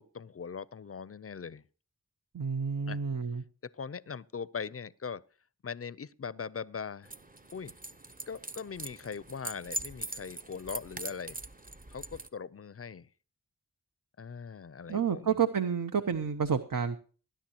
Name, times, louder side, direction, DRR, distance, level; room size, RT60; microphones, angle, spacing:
voice 1, 0.0-1.6 2.9-3.0 3.6-5.2 5.6-7.1 7.5-7.8 8.3-11.4 11.9-13.1 14.2-15.4, left 6 dB, 40° left, 0.5 m, -40 dB
voice 2, 2.3-3.4 14.9-17.0, right 7 dB, 65° right, 0.8 m, -30 dB
sound 1, 7.0-12.3, right 1 dB, 25° right, 0.8 m, -42 dB
19.5 x 10.0 x 2.9 m
wide cardioid pair, 40°, 36 cm